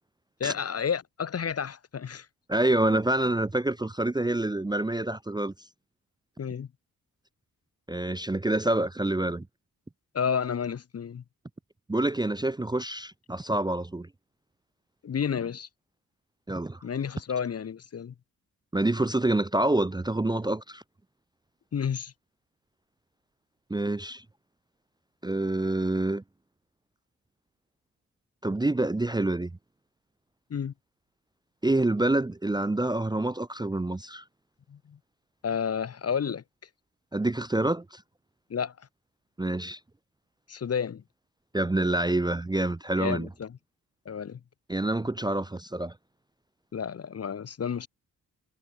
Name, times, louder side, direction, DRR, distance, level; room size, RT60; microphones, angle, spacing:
voice 1, 0.4-2.3 6.4-6.7 10.1-11.2 15.0-15.7 16.8-18.1 21.7-22.1 30.5-30.7 34.7-35.0 35.4-36.4 38.5-38.9 40.5-41.0 43.0-43.6 44.1-44.4 46.7-47.9, left 7 dB, 40° left, 0.8 m, -31 dB
voice 2, 2.5-5.5 7.9-9.5 11.9-14.1 16.5-16.8 18.7-20.8 23.7-24.2 25.2-26.2 28.4-29.5 31.6-34.2 37.1-38.0 39.4-39.8 41.5-43.3 44.7-45.9, right 2 dB, 10° right, 0.6 m, -27 dB
cardioid pair, 70°, 39 cm